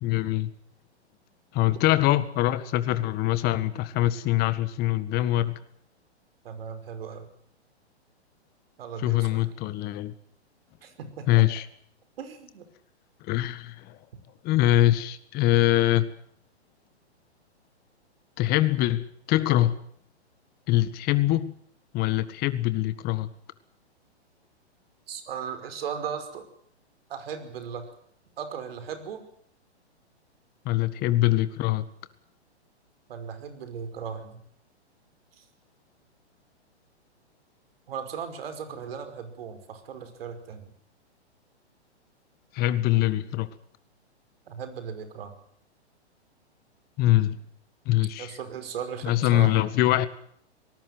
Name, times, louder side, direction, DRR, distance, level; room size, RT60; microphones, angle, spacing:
voice 1, 0.0-0.5 1.5-5.6 9.0-10.1 11.3-11.6 13.3-14.0 14.4-16.1 18.4-19.8 20.7-21.6 21.9-23.3 30.7-31.9 42.5-43.5 47.0-47.4 47.9-48.3 49.0-50.1, left 15 dB, 25° left, 14 dB, 1.7 m, -23 dB
voice 2, 6.4-7.3 8.8-9.5 10.8-11.4 12.2-12.6 25.1-26.4 27.1-27.9 28.4-29.2 33.1-34.4 35.4-35.5 37.9-40.7 44.5-45.4 48.2-49.7, right 7 dB, 60° right, 9 dB, 5.3 m, -37 dB
24.5 x 19.5 x 8.0 m, 0.64 s
hypercardioid pair, 125°, 34 cm